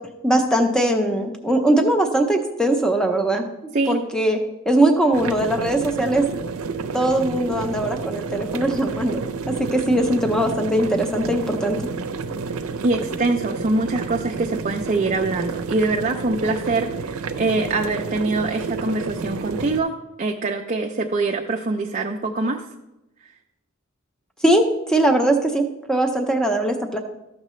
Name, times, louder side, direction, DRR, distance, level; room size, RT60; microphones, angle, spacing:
voice 1, 0.2-3.5 3.9-4.4 4.7-6.2 6.9-11.8 24.4-27.0, right 1 dB, 5° left, 5 dB, 0.7 m, -20 dB
sound 1, 5.1-19.8, right 4 dB, 90° right, 0.5 m, -30 dB
voice 2, 12.8-22.6, right 2 dB, 35° right, 2 dB, 0.5 m, -24 dB
13.0 x 6.5 x 3.1 m, 0.94 s
head